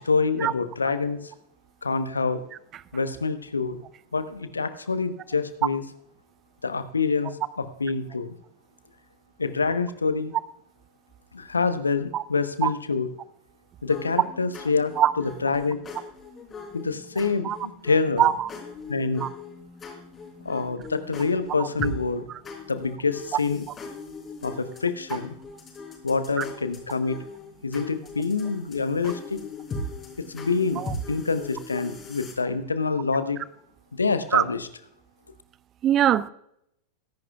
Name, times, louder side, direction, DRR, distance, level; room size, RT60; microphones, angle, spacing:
voice 1, 0.1-1.2 1.8-2.4 2.9-3.8 4.1-5.8 6.6-7.3 7.6-8.3 9.4-10.3 11.3-13.1 13.8-14.9 15.2-15.8 16.7-18.3 18.9-19.3 20.4-22.2 22.7-23.6 24.4-25.3 26.0-27.2 27.6-29.4 30.3-30.8 31.1-33.4 33.9-34.7, left 4 dB, 75° left, 1.0 m, -26 dB
sound 1, 13.9-32.3, left 2 dB, 20° left, 4.5 m, -40 dB
voice 2, 18.2-18.5 19.2-19.3 30.8-30.9 34.3-34.4 35.8-36.3, right 11 dB, 30° right, 0.6 m, -21 dB
22.5 x 11.0 x 2.4 m
figure-of-eight pair, 90°, 0 cm